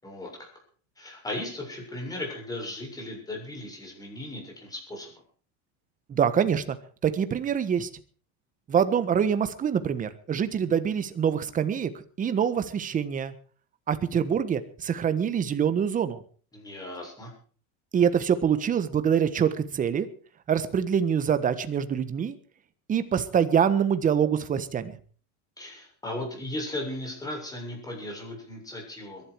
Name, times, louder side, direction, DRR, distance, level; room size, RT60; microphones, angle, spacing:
voice 1, 0.0-0.5 1.0-5.2 16.5-17.3 25.6-29.3, left 1 dB, 10° left, 0 dB, 7.1 m, -37 dB
voice 2, 6.1-6.8 7.0-7.9 8.7-11.9 12.2-13.3 13.9-16.2 17.9-20.1 20.5-22.3 22.9-24.9, right 8 dB, 25° right, 11 dB, 1.4 m, -25 dB
22.0 x 12.0 x 4.7 m, 0.42 s
cardioid pair, 150°, 35 cm